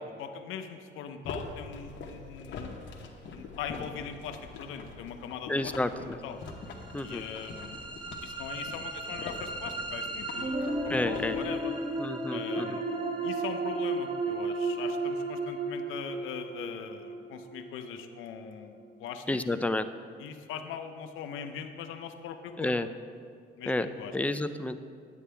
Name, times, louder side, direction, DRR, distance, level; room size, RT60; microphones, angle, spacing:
voice 1, 0.0-2.7 3.3-5.7 6.0-6.4 7.0-7.8 8.2-11.7 12.3-12.8 13.2-19.2 20.2-22.7 23.6-24.2, left 7 dB, 90° left, 7 dB, 0.6 m, -41 dB
sound 1, 1.2-11.4, left 3 dB, 70° left, 1.0 m, -44 dB
voice 2, 5.5-6.2 6.9-7.2 10.9-11.4 12.0-12.8 19.3-19.9 22.6-22.9 23.7-24.8, left 2 dB, 5° left, 10 dB, 0.3 m, -30 dB
sound 2, 6.6-18.6, right 2 dB, 25° right, 0.9 m, -34 dB
9.4 x 8.4 x 3.4 m, 2.3 s
cardioid pair, 90°, 20 cm